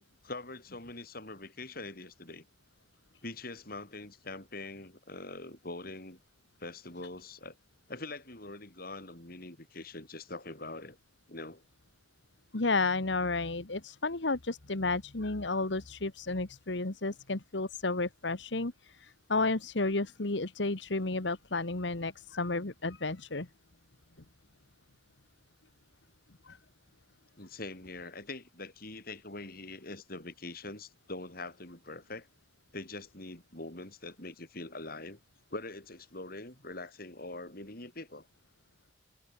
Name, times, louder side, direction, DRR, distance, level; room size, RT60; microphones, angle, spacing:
voice 1, 0.0-2.4 3.2-6.2 6.6-7.6 7.9-11.0 11.3-11.6 27.4-32.3 32.7-35.2 35.5-38.3, left 2 dB, 50° left, 6.2 m, -43 dB
voice 2, 12.5-23.5 26.5-26.6, left 3 dB, 70° left, 1.6 m, -32 dB
head